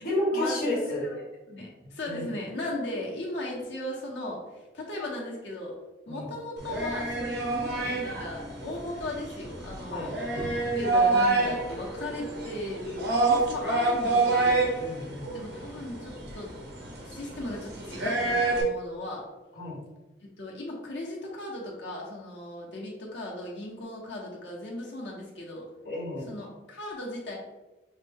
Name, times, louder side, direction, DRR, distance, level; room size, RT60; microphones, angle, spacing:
voice 1, 0.0-1.0 2.1-2.3 6.1-6.3 9.9-10.1 14.8-15.3 19.6-19.8 25.8-26.3, left 1 dB, 55° left, -3 dB, 1.2 m, -30 dB
voice 2, 0.9-1.2 1.5-5.8 6.1-10.1 10.5-14.9 15.3-16.5 17.0-19.2 20.4-25.7 26.3-27.3, left 1 dB, 90° left, -3 dB, 1.1 m, -37 dB
sound 1, 6.6-18.6, right 3 dB, 70° right, 1.1 m, -28 dB
5.7 x 2.2 x 3.5 m, 1.1 s
head